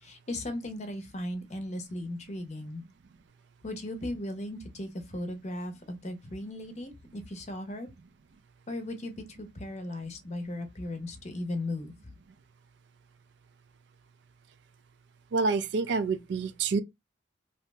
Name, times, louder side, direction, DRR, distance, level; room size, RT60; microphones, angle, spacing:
voice 1, 0.0-2.8 3.6-7.9 8.7-11.9, left 1 dB, 35° left, 0.6 m, -37 dB
voice 2, 15.3-16.8, right 4 dB, 65° right, 0.3 m, -27 dB
2.8 x 2.0 x 3.3 m
head